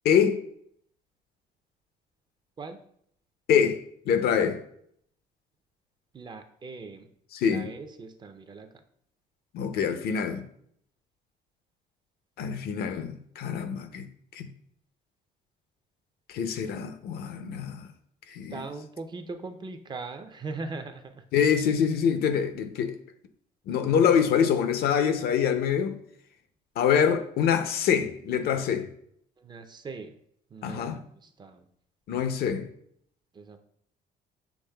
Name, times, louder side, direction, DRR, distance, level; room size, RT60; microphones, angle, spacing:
voice 1, 0.0-0.4 3.5-4.6 7.3-7.7 9.5-10.5 12.4-14.1 14.3-14.5 16.3-17.9 18.3-18.6 21.3-23.0 23.7-26.0 26.8-28.9 30.6-31.0 32.1-32.7, left 7 dB, 70° left, 0.5 m, -25 dB
voice 2, 6.1-7.1 7.4-8.8 18.5-21.2 29.4-30.2 30.5-31.6 33.3-33.6, right 3 dB, 25° right, 0.4 m, -40 dB
7.1 x 3.1 x 2.2 m
cardioid pair, 110°, 17 cm